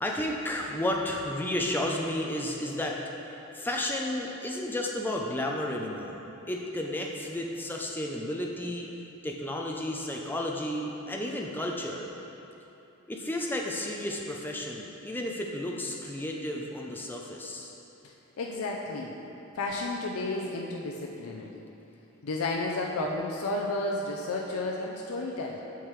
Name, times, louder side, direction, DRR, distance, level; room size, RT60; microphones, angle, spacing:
voice 1, 0.0-3.0 3.5-8.9 9.2-12.1 13.1-17.7, left 1 dB, 10° left, 0 dB, 0.5 m, -32 dB
voice 2, 18.0-19.2 19.5-21.6 22.2-25.6, left 2 dB, 90° left, -1 dB, 0.5 m, -32 dB
8.0 x 5.8 x 3.1 m, 2.9 s
head